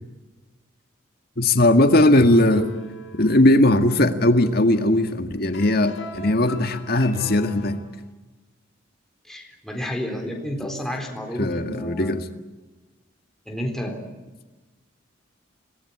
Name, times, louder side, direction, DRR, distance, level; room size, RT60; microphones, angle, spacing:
voice 1, 1.4-2.7 3.2-7.8 11.4-12.2, left 1 dB, 50° left, 8 dB, 2.0 m, -18 dB
sound 1, 2.2-7.9, left 1 dB, 75° left, 5.5 m, -41 dB
voice 2, 9.2-12.1 13.5-14.0, equal, ahead, 2 dB, 4.0 m, -31 dB
27.0 x 20.0 x 8.7 m, 1.2 s
head